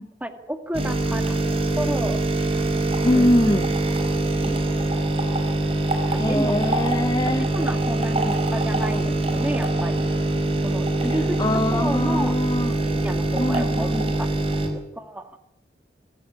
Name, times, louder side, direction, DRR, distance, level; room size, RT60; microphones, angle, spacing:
voice 1, 0.2-2.3 2.5-3.3 4.4-4.6 6.1-6.7 7.4-10.1 10.6-11.4 11.7-12.4 12.8-13.9 14.2-15.4, right 1 dB, 10° right, 7 dB, 2.1 m, -31 dB
sound 1, 0.7-14.7, right 2 dB, 30° right, 5.0 m, -23 dB
voice 2, 3.0-3.7 6.2-7.5 11.4-12.8 13.3-14.1, left 1 dB, 20° left, 9 dB, 0.8 m, -23 dB
25.5 x 15.0 x 8.9 m, 0.83 s
head